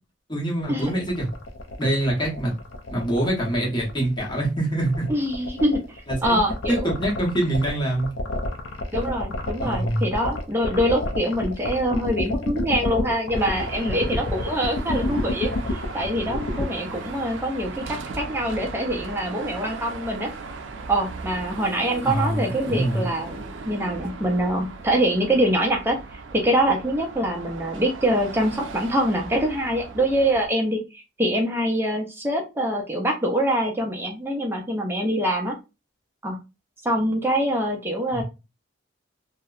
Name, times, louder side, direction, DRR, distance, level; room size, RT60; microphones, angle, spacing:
voice 1, 0.3-1.3 1.8-2.5 2.9-5.1 6.1-6.4 6.7-8.1 9.0-9.2 9.6-10.1 22.0-23.1 38.1-38.2, right 1 dB, 25° left, -2 dB, 0.8 m, -25 dB
sound 1, 0.8-16.6, left 2 dB, 80° left, 0.4 m, -29 dB
voice 2, 5.1-6.9 8.9-20.3 20.9-35.5 36.2-36.4 36.8-38.2, right 1 dB, 10° right, 1 dB, 0.4 m, -24 dB
Car passing by / Traffic noise roadway noise / Engine, 13.4-30.5, right 3 dB, 70° right, 0.4 m, -38 dB
2.7 x 2.0 x 2.3 m, 0.27 s
head